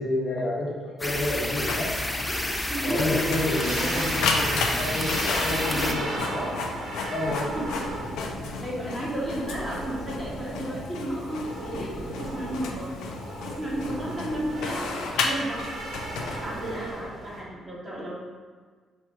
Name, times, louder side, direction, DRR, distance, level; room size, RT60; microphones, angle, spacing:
voice 1, 0.0-1.9 2.8-6.5 7.1-7.6, left 2 dB, 50° left, -4 dB, 1.1 m, -30 dB
sound 1, 1.0-5.9, left 1 dB, 10° left, 0.4 m, -29 dB
Printer, 1.5-16.9, left 4 dB, 85° left, 0.4 m, -33 dB
voice 2, 2.7-4.0 5.7-6.3 6.9-7.8 8.3-12.9 13.4-15.7 16.4-18.1, right 1 dB, 20° right, -6 dB, 1.3 m, -33 dB
sound 2, 3.2-17.4, right 1 dB, 65° right, 1.1 m, -36 dB
3.5 x 2.8 x 4.7 m, 1.5 s
cardioid pair, 90°, 0 cm